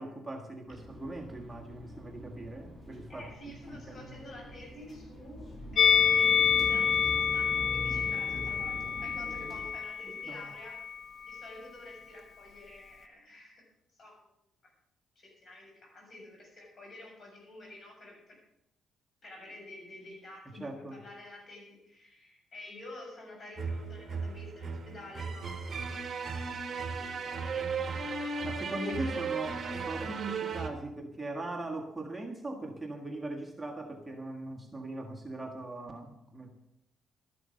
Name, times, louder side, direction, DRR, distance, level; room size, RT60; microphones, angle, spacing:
voice 1, 0.0-4.3 10.0-10.5 20.6-21.0 28.4-36.5, right 2 dB, 10° right, 1 dB, 1.6 m, -40 dB
sound 1, 0.7-9.7, left 1 dB, 20° left, 4.3 m, -44 dB
voice 2, 3.1-10.9 11.3-13.6 14.0-14.1 15.2-18.4 19.2-25.7 26.1-26.5 26.9-27.5 27.8-28.6 29.0-29.3, left 1 dB, 45° left, 0 dB, 7.1 m, -49 dB
Musical instrument, 5.8-11.0 11.3-11.5, left 7 dB, 60° left, 0.9 m, -27 dB
sound 2, 23.6-30.7, right 4 dB, 40° right, 1.7 m, -36 dB
12.5 x 11.0 x 6.5 m, 0.81 s
cardioid pair, 90°, 0 cm